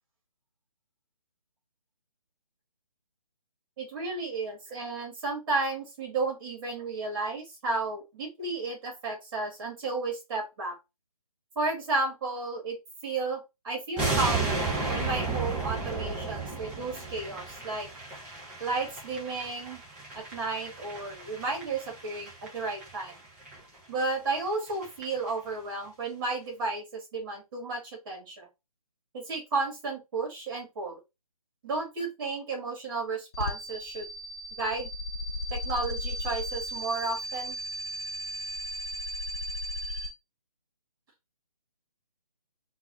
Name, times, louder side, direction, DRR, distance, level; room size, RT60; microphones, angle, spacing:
voice 1, 3.8-10.8 11.6-12.8 13.0-17.9 18.6-19.8 20.1-23.1 23.9-28.5 29.1-31.0 31.6-34.1 34.5-34.9 35.5-37.6, right 3 dB, 35° right, 1 dB, 2.6 m, -33 dB
sound 1, 14.0-23.1 23.4-23.6 24.0-24.1 24.4-24.5 24.7-25.0 25.3-25.4, right 3 dB, 5° right, 1.2 m, -33 dB
sound 2, 33.3-40.1, left 1 dB, 40° left, 1.2 m, -35 dB
3.9 x 3.0 x 4.2 m, 0.23 s
figure-of-eight pair, 150°, 19 cm